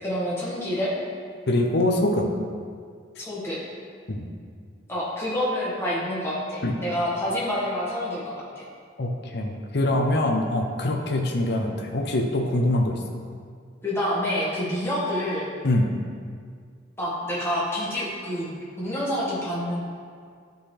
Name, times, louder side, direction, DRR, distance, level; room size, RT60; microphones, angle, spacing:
voice 1, 0.0-0.9 3.2-3.6 4.9-8.4 13.8-15.5 17.0-18.5 18.8-19.8, equal, 15° left, -8 dB, 1.7 m, -27 dB
voice 2, 1.5-2.3 4.1-4.3 6.6-6.7 9.0-13.0 15.6-15.9, left 1 dB, 55° left, 1 dB, 0.7 m, -24 dB
11.5 x 3.9 x 3.3 m, 2.1 s
head